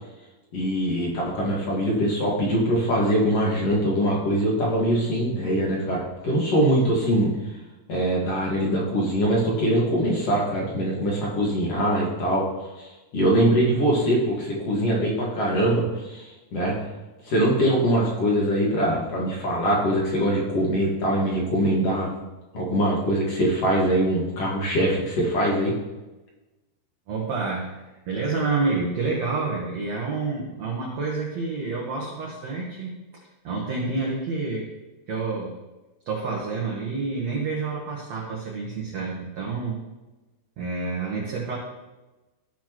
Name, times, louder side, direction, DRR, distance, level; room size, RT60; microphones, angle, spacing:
voice 1, 0.5-7.3 7.9-16.9 17.3-22.1 22.5-25.7, right 1 dB, 50° left, -4 dB, 2.2 m, -23 dB
voice 2, 27.1-34.7 35.1-35.5 36.0-39.8 40.6-41.6, right 4 dB, 70° right, -3 dB, 1.6 m, -28 dB
15.0 x 6.0 x 3.0 m, 1.1 s
omnidirectional pair, 5.0 m